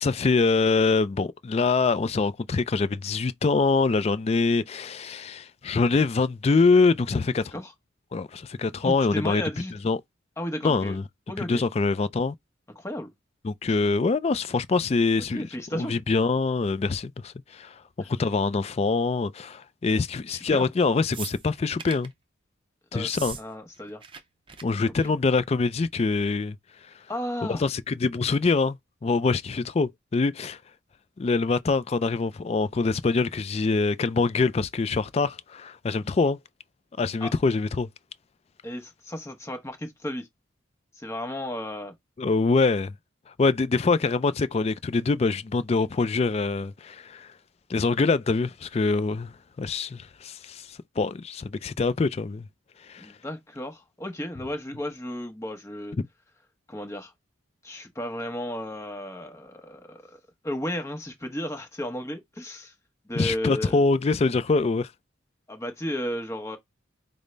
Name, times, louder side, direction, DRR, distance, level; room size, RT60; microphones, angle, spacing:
voice 1, 0.0-7.5 8.1-9.4 9.8-10.0 10.6-11.0 11.5-12.3 13.4-22.1 22.9-23.4 24.6-26.6 27.5-28.8 29.0-30.6 31.2-36.4 37.0-37.9 42.2-42.9 43.4-47.3 47.7-52.5 52.9-53.1 63.2-64.9, left 4 dB, 30° left, 0.3 m, -24 dB
voice 2, 8.8-9.7 10.4-11.0 11.3-11.6 12.7-13.1 15.3-15.9 20.3-20.7 22.9-24.0 25.0-25.1 27.1-27.7 37.2-37.3 38.6-40.3 40.9-41.9 53.0-56.0 56.7-57.1 57.6-62.7 63.1-63.8 65.5-66.6, left 1 dB, 15° left, 0.8 m, -34 dB
sound 1, 21.1-22.1 23.0-23.4 23.7-24.2 24.5-24.6 24.9-25.2 26.2-26.3, right 6 dB, 25° right, 0.5 m, -39 dB
5.2 x 2.0 x 3.2 m
head